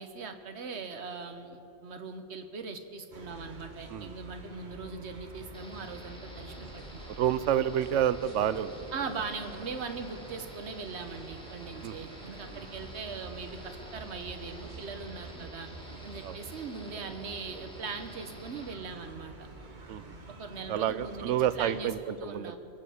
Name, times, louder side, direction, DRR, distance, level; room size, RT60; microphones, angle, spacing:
voice 1, 0.0-7.1 8.9-15.7 16.0-19.5 20.4-22.6, right 4 dB, 65° right, 7 dB, 1.3 m, -40 dB
sound 1, 3.1-21.8, right 2 dB, 40° right, 1.4 m, -47 dB
sound 2, 5.5-18.7, equal, 5° left, 1.6 m, -50 dB
voice 2, 7.1-9.3 11.8-12.7 16.2-16.4 19.9-20.1 20.7-22.6, right 10 dB, 85° right, 15 dB, 0.9 m, -30 dB
23.0 x 7.8 x 6.5 m, 2.9 s
omnidirectional pair, 1.2 m